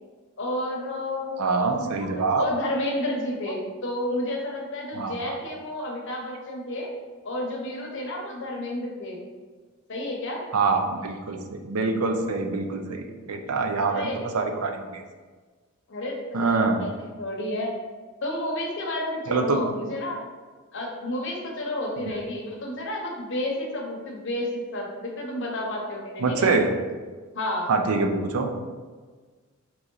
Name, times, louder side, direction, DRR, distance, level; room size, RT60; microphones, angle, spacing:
voice 1, 0.4-1.4 1.8-6.9 7.2-9.2 9.9-10.4 13.9-14.5 15.9-16.9 17.2-17.7 18.2-20.2 20.7-26.5 27.3-27.7, left 1 dB, 55° left, 0 dB, 0.8 m, -31 dB
voice 2, 1.4-2.4 4.9-5.4 10.5-11.4 11.6-14.1 14.3-15.0 16.3-16.9 19.3-19.6 26.2-26.7 27.7-28.5, right 4 dB, 80° right, 5 dB, 0.5 m, -25 dB
3.8 x 3.0 x 3.9 m, 1.4 s
head